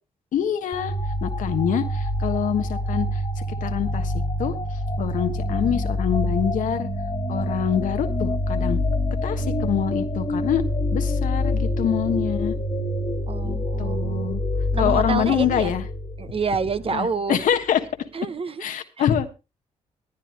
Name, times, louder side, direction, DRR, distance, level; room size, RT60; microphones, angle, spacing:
voice 1, 0.3-0.9 1.2-4.1 4.4-4.6 5.0-6.9 7.3-8.8 9.2-10.6 10.9-12.5 13.4-14.4 14.8-15.8 16.9-17.8 18.6-19.3, left 9 dB, 80° left, 1.4 m, -25 dB
sound 1, 0.7-17.1, left 1 dB, 35° left, 1.6 m, -26 dB
voice 2, 13.3-14.3 14.7-15.7 16.2-17.4 18.1-18.6, right 5 dB, 45° right, 1.1 m, -28 dB
19.0 x 10.5 x 3.2 m
supercardioid pair, 60°, 13 cm